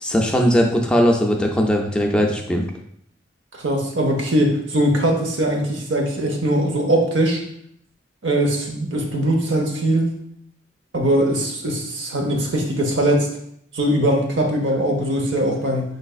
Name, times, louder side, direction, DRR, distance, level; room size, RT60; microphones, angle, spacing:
voice 1, 0.0-2.6, equal, 5° left, 1 dB, 0.4 m, -19 dB
voice 2, 3.6-7.4 8.2-10.1 10.9-13.3 13.7-16.0, right 1 dB, 85° right, 1 dB, 0.8 m, -21 dB
4.8 x 3.3 x 2.4 m, 0.70 s
head